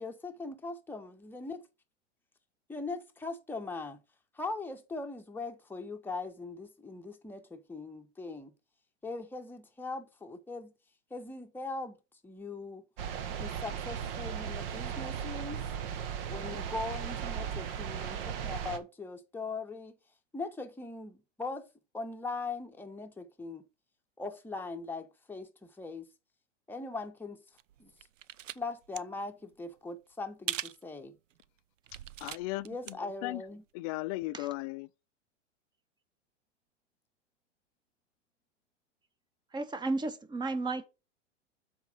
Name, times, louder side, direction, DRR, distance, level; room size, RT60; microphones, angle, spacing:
voice 1, 0.0-1.6 2.7-4.0 4.3-8.5 9.0-10.7 11.1-12.0 12.2-12.8 13.4-15.6 16.3-20.0 20.3-21.7 21.9-23.6 24.2-26.1 26.7-27.4 27.8-27.9 28.5-31.1 32.6-33.6, left 3 dB, 5° left, 1.1 m, -40 dB
sound 1, 13.0-18.8, right 8 dB, 50° right, 1.2 m, -37 dB
sound 2, 27.6-28.6 28.8-29.0 30.5-30.8 31.3-31.4 31.9-32.9 33.3-33.4, right 11 dB, 85° right, 0.5 m, -39 dB
voice 2, 32.2-33.4 33.7-34.9, left 19 dB, 30° left, 0.4 m, -36 dB
voice 3, 39.5-40.8, right 3 dB, 10° right, 1.1 m, -33 dB
7.2 x 4.6 x 5.2 m
hypercardioid pair, 110°, 37 cm